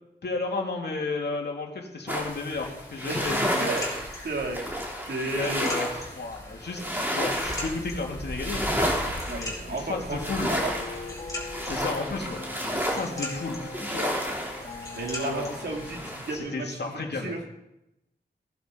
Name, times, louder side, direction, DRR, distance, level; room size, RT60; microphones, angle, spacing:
voice 1, 0.2-3.7 5.4-5.9 6.1-6.8 7.1-8.6 9.3-10.5 11.6-14.2 15.2-15.6 16.3-17.3, left 3 dB, 75° left, 1 dB, 2.4 m, -33 dB
sound 1, 2.1-16.4, equal, 10° right, 3.1 m, -32 dB
sound 2, 2.2-16.5, left 1 dB, 20° left, 4.6 m, -42 dB
voice 2, 4.2-4.6 5.1-5.7 9.3-10.7 14.9-17.4, right 2 dB, 80° right, 1 dB, 2.6 m, -33 dB
sound 3, 6.7-16.2, left 3 dB, 50° left, 1.5 m, -43 dB
17.0 x 11.5 x 3.9 m, 0.89 s
wide cardioid pair, 90°, 17 cm